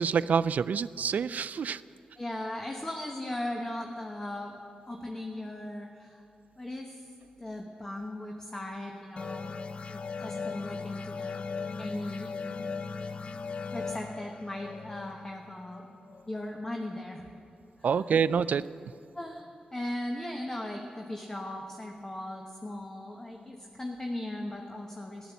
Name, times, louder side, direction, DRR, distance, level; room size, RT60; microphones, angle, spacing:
voice 1, 0.0-1.8 17.8-18.6, right 6 dB, 70° right, 17 dB, 0.3 m, -27 dB
voice 2, 2.2-4.6 4.9-6.2 6.6-7.0 7.4-9.5 9.9-11.4 11.8-12.3 13.0-13.1 13.3-15.9 16.3-17.3 17.8-17.9 19.1-25.3, left 1 dB, 20° left, 2 dB, 1.2 m, -38 dB
sound 1, 9.2-16.4, left 4 dB, 45° left, 0.6 m, -38 dB
14.5 x 11.5 x 7.1 m, 2.6 s
cardioid pair, 80°, 3 cm